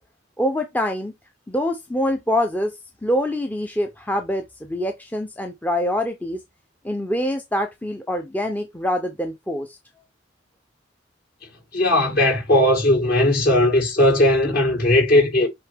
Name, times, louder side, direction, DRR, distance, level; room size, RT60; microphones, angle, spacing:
voice 1, 0.4-1.1 1.5-6.4 6.8-9.8, left 1 dB, 10° left, 0.6 m, -25 dB
voice 2, 11.7-15.5, left 1 dB, 50° left, 5.1 m, -17 dB
7.9 x 3.6 x 3.4 m
head